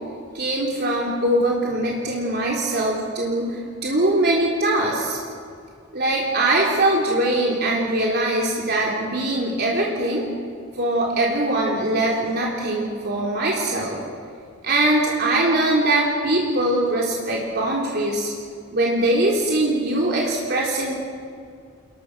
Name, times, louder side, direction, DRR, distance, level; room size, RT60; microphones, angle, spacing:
voice 1, 0.3-5.2 5.9-10.3 10.7-14.0 14.6-18.3 18.7-20.9, right 1 dB, 55° right, -3 dB, 3.9 m, -22 dB
29.5 x 21.0 x 6.2 m, 2.3 s
head